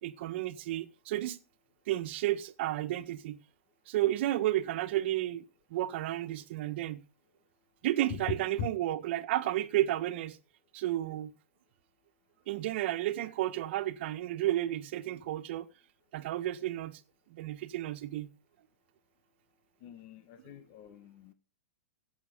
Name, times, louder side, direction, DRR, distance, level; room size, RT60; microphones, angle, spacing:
voice 1, 0.0-1.4 1.9-3.4 3.9-7.0 7.8-10.4 10.7-11.3 12.5-15.7 16.1-17.0 17.3-18.3, right 14 dB, 55° right, 1.6 m, -32 dB
voice 2, 19.8-21.3, left 9 dB, 45° left, 1.6 m, -42 dB
17.5 x 7.9 x 5.3 m
hypercardioid pair, 130°, 7 cm